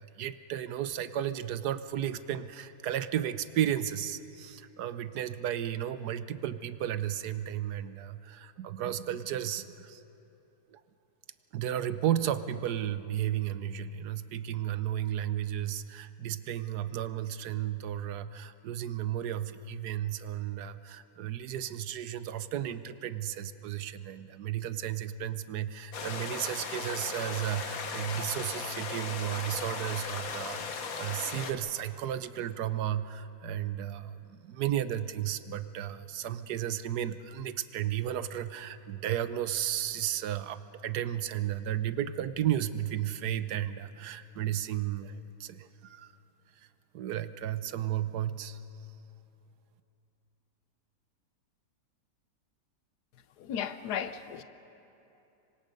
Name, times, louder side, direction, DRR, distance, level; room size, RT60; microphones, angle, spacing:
voice 1, 0.0-10.0 10.7-10.8 11.5-46.1 46.9-48.6, right 11 dB, 80° right, 1.3 m, -33 dB
sound 1, 25.9-31.5, left 5 dB, 60° left, 1.6 m, -37 dB
voice 2, 53.4-54.4, left 8 dB, 80° left, 1.4 m, -35 dB
26.0 x 24.0 x 5.3 m
omnidirectional pair, 1.7 m